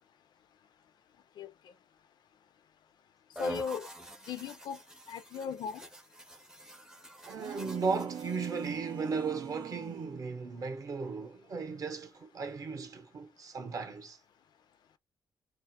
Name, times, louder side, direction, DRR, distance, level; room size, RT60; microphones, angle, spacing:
voice 1, 3.4-3.9 4.3-4.8 5.1-5.8, left 7 dB, 65° left, 0.4 m, -37 dB
sound 1, 3.4-8.8, equal, 5° right, 0.4 m, -46 dB
voice 2, 7.2-14.2, right 4 dB, 45° right, 0.7 m, -36 dB
sound 2, 7.3-10.2, right 8 dB, 80° right, 0.5 m, -42 dB
2.3 x 2.0 x 2.6 m
cardioid pair, 110°, 8 cm